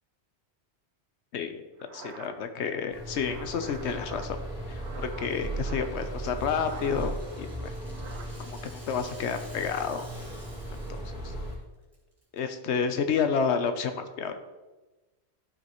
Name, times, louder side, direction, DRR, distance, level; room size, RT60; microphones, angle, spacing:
voice 1, 1.3-1.6 1.9-4.4 4.7-7.8 8.4-10.1 10.7-11.3 12.3-14.3, left 6 dB, 80° left, 8 dB, 1.0 m, -30 dB
sound 1, 1.8-6.1 6.5-7.3 7.6-8.3, right 4 dB, 75° right, 1.1 m, -47 dB
sound 2, 2.9-11.5, right 1 dB, 5° right, 2.4 m, -37 dB
Rattle (instrument), 5.3-11.1 11.4-11.5 11.9-12.4, right 1 dB, 35° right, 2.4 m, -53 dB
11.0 x 5.1 x 3.0 m, 1.2 s
omnidirectional pair, 1.1 m